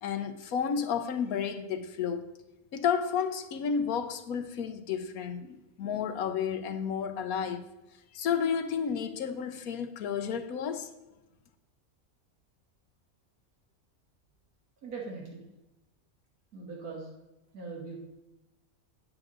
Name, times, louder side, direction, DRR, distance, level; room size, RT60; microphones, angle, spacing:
voice 1, 0.0-2.3 2.7-7.7 8.1-10.9, left 7 dB, 80° left, 1.2 m, -31 dB
voice 2, 14.8-15.4 16.5-17.1 17.5-18.0, right 4 dB, 90° right, 2.0 m, -40 dB
8.9 x 7.9 x 3.7 m
omnidirectional pair, 1.5 m